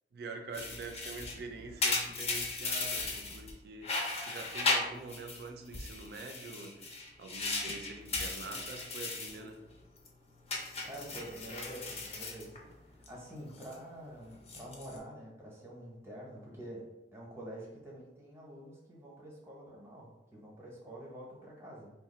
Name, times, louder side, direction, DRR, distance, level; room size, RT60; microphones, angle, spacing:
voice 1, 0.1-9.6, right 3 dB, 60° right, 0.4 m, -45 dB
sound 1, 0.5-3.5 3.8-5.4 5.7-9.4 9.7-10.1 10.5-13.1 13.4-13.8 14.3-15.0, left 3 dB, 35° left, 0.6 m, -36 dB
voice 2, 10.8-21.9, right 1 dB, 15° right, 0.8 m, -47 dB
2.8 x 2.3 x 4.1 m
head